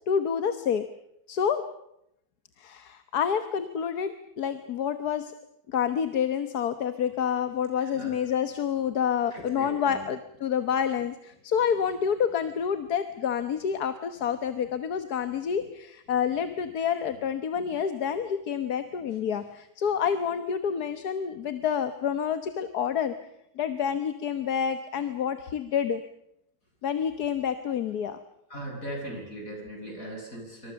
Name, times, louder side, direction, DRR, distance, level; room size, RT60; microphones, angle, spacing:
voice 1, 0.1-0.8 1.3-1.6 2.6-5.3 5.7-23.1 23.6-26.0 26.8-28.2, left 7 dB, 85° left, 10 dB, 1.7 m, -28 dB
voice 2, 7.8-8.3 9.3-10.1 15.2-15.6 17.0-17.1 17.5-17.8 19.0-19.1 28.5-30.7, right 1 dB, 60° left, 1 dB, 8.1 m, -40 dB
27.5 x 24.5 x 7.0 m, 0.80 s
omnidirectional pair, 1.6 m